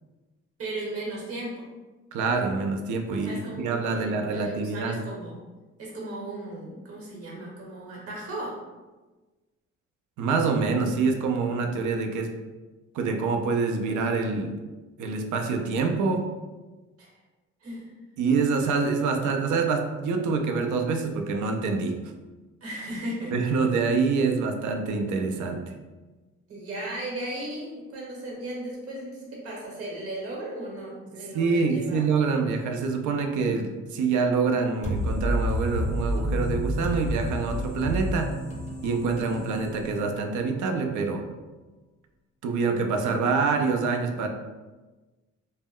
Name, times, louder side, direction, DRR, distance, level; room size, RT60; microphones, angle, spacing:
voice 1, 0.6-1.6 3.1-5.3 5.8-8.6 17.0-17.1 17.6-17.9 22.6-23.4 26.5-32.0, right 1 dB, 50° right, -3 dB, 1.0 m, -36 dB
voice 2, 2.1-5.0 10.2-12.4 12.9-14.5 15.0-16.3 18.2-22.0 23.3-25.7 31.3-38.3 38.8-41.3 42.4-44.3, right 4 dB, 75° right, 5 dB, 0.5 m, -26 dB
sound 1, 34.8-40.5, equal, 25° left, 0.5 m, -30 dB
2.1 x 2.0 x 3.6 m, 1.2 s
cardioid pair, 90°, 30 cm